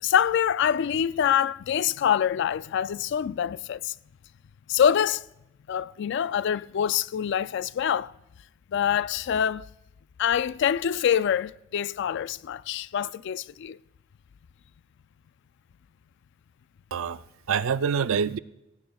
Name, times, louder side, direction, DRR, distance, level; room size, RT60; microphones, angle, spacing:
voice 1, 0.0-3.9 4.7-5.3 5.7-8.1 8.7-9.7 10.2-13.8, left 9 dB, 60° left, 0.3 m, -25 dB
voice 2, 16.9-18.4, right 6 dB, 90° right, 0.4 m, -26 dB
17.0 x 16.5 x 2.3 m
head